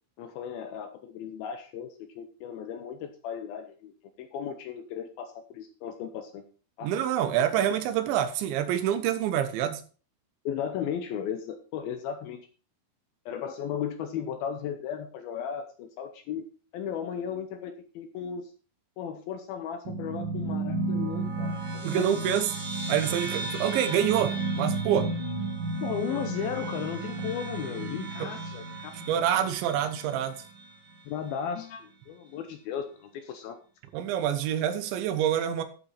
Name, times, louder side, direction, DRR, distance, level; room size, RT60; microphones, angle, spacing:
voice 1, 0.2-3.9 4.2-6.4 6.8-6.9 10.5-12.4 13.3-16.5 16.7-18.5 19.0-22.2 25.8-29.1 31.1-33.6, left 8 dB, 75° left, 8 dB, 2.3 m, -35 dB
voice 2, 6.8-9.8 21.8-22.5 22.9-25.1 28.2-28.3 29.1-30.4 33.9-35.6, right 10 dB, 85° right, 9 dB, 3.5 m, -26 dB
sound 1, 19.8-30.6, right 3 dB, 65° right, 1.0 m, -33 dB
11.5 x 8.5 x 4.2 m, 0.38 s
omnidirectional pair, 5.1 m